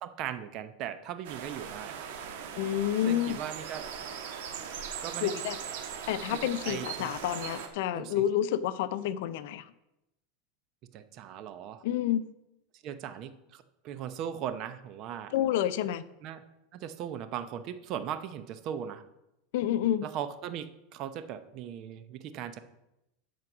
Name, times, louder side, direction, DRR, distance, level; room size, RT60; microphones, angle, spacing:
voice 1, 0.0-2.0 3.1-3.9 5.0-5.3 6.3-7.2 7.9-8.3 10.8-11.8 12.7-15.3 16.2-16.4 16.7-19.0 20.0-22.6, right 9 dB, 45° right, 11 dB, 0.8 m, -38 dB
sound 1, 1.2-7.7, right 8 dB, 75° right, 1.5 m, -39 dB
voice 2, 2.5-3.4 5.2-5.6 6.1-9.7 11.8-12.2 15.3-16.0 19.5-20.1, left 11 dB, 70° left, 14 dB, 0.6 m, -29 dB
12.5 x 4.7 x 6.1 m, 0.89 s
supercardioid pair, 145°, 0 cm